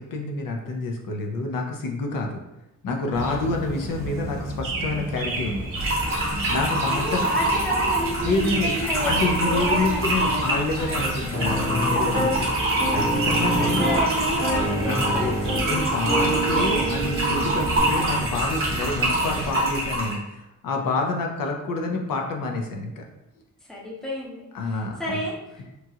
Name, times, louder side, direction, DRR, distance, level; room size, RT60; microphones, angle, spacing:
voice 1, 0.0-2.4 2.8-5.7 6.5-7.2 8.2-8.7 9.1-13.8 14.8-15.4 15.7-23.0 24.5-25.2, left 3 dB, 80° left, 1 dB, 0.6 m, -28 dB
sound 1, 3.1-19.5, right 2 dB, 80° right, 0.6 m, -32 dB
sound 2, 5.8-20.2, right 1 dB, 40° right, 0.9 m, -26 dB
voice 2, 6.9-11.3 13.5-15.8 16.5-16.7 23.6-25.7, equal, ahead, -5 dB, 0.6 m, -31 dB
Piano, 11.3-12.3 12.8-14.0 14.4-17.8, right 1 dB, 50° left, 1.3 m, -27 dB
3.0 x 2.4 x 2.7 m, 0.92 s
wide cardioid pair, 170°, 33 cm